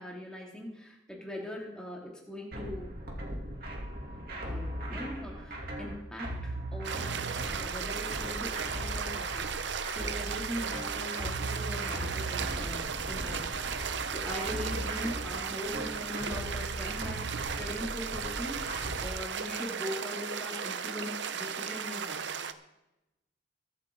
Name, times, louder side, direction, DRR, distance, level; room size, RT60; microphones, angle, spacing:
voice 1, 0.0-2.9 4.4-22.4, left 1 dB, 5° left, -2 dB, 2.6 m, -41 dB
sound 1, 2.5-19.1, right 1 dB, 50° right, 2.8 m, -38 dB
sound 2, 6.8-22.5, right 6 dB, 70° right, 0.7 m, -36 dB
23.0 x 8.4 x 3.9 m, 0.95 s
head